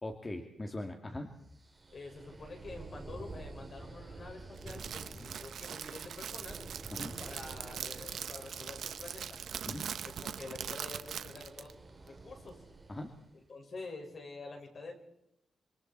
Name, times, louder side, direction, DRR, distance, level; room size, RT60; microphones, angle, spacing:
voice 1, 0.0-1.3 5.1-5.3 6.9-7.2 9.7-9.9 12.9-13.1, left 1 dB, 20° left, 4 dB, 2.0 m, -41 dB
sound 1, 1.5-13.3, right 2 dB, 20° right, 3.4 m, -50 dB
voice 2, 1.9-6.6 7.2-9.4 10.0-12.6 13.5-14.9, left 3 dB, 45° left, 3 dB, 5.6 m, -47 dB
Crackle, 4.6-11.7, right 8 dB, 75° right, 1.1 m, -42 dB
26.5 x 25.0 x 4.3 m, 0.80 s
cardioid pair, 115°, 0 cm